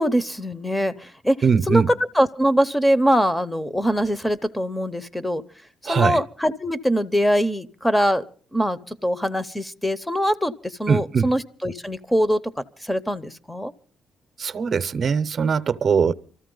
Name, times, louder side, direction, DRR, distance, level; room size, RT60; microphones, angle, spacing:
voice 1, 0.0-1.4 1.7-5.4 5.9-8.2 8.5-12.4 12.8-13.7, equal, 10° left, 0.7 m, -22 dB
voice 2, 1.4-1.9 5.8-6.2 10.9-11.3 14.4-16.1, right 6 dB, 50° right, 0.6 m, -21 dB
23.5 x 14.0 x 3.8 m
cardioid pair, 90°, 0 cm